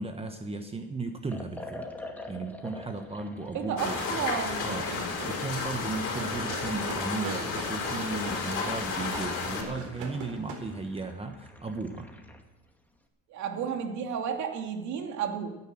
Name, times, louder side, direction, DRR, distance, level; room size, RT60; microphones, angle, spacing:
voice 1, 0.0-1.9 2.3-4.0 4.6-5.0 5.2-12.1, right 3 dB, 15° right, 6 dB, 1.3 m, -35 dB
Liquid, 1.3-12.5, left 2 dB, 5° left, 2.2 m, -47 dB
voice 2, 3.5-4.7 13.3-15.5, right 7 dB, 60° right, 3 dB, 2.8 m, -32 dB
sound 1, 3.8-9.6, left 5 dB, 40° left, 4.5 m, -32 dB
sound 2, 3.9-10.6 10.9-11.0, right 4 dB, 80° right, 4.4 m, -41 dB
15.0 x 9.9 x 7.7 m, 1.0 s
supercardioid pair, 110°, 33 cm